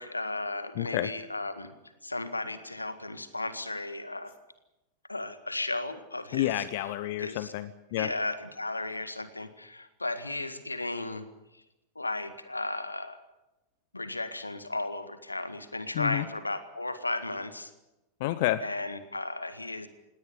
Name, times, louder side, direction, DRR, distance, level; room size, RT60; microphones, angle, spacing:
voice 1, 0.0-1.7 2.0-4.3 5.1-6.6 7.2-7.5 8.0-11.3 11.5-11.6 12.0-13.2 13.9-17.7 18.6-19.9, left 2 dB, 85° left, 11 dB, 1.8 m, -35 dB
voice 2, 0.8-1.1 6.3-8.1 15.9-16.2 18.2-18.6, left 15 dB, 50° left, 15 dB, 0.9 m, -29 dB
19.5 x 17.5 x 9.6 m, 0.98 s
figure-of-eight pair, 90°, 0 cm